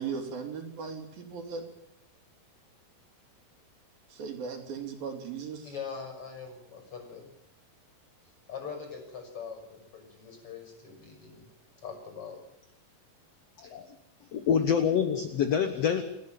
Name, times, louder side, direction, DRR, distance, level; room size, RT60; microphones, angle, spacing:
voice 1, 0.0-1.7 4.1-5.7, right 6 dB, 70° right, 3 dB, 4.8 m, -37 dB
voice 2, 5.6-7.3 8.5-11.5 11.8-12.4, left 6 dB, 35° left, 4 dB, 7.0 m, -42 dB
voice 3, 13.6-13.9 14.3-16.0, left 7 dB, 60° left, 9 dB, 1.8 m, -26 dB
28.5 x 11.0 x 9.0 m, 0.85 s
omnidirectional pair, 4.2 m